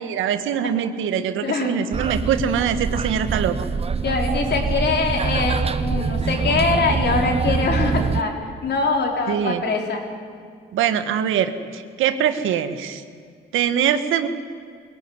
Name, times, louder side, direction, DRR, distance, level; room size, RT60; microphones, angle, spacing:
voice 1, 0.0-3.6 9.3-9.6 10.7-13.0 13.5-14.3, right 8 dB, 85° right, 10 dB, 1.5 m, -23 dB
voice 2, 1.4-1.8 4.0-10.0, left 4 dB, 60° left, 2 dB, 4.3 m, -23 dB
sound 1, 1.9-8.2, right 5 dB, 30° right, 0.9 m, -24 dB
23.0 x 17.0 x 9.7 m, 2.2 s
cardioid pair, 90°, 20 cm